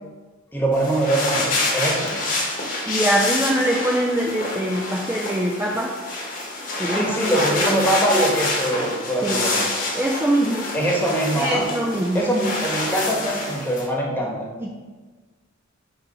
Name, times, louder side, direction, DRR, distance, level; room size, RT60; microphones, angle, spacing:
voice 1, 0.5-2.2 6.9-9.7 10.7-11.7 12.1-14.3, right 1 dB, 10° left, -2 dB, 1.2 m, -23 dB
sound 1, 0.7-13.9, left 2 dB, 45° left, 1.3 m, -27 dB
voice 2, 2.8-6.0 6.8-7.3 9.2-9.5 10.0-10.7 11.3-12.2 14.6-14.7, right 1 dB, 10° right, -1 dB, 0.4 m, -23 dB
5.4 x 4.1 x 5.4 m, 1.4 s
head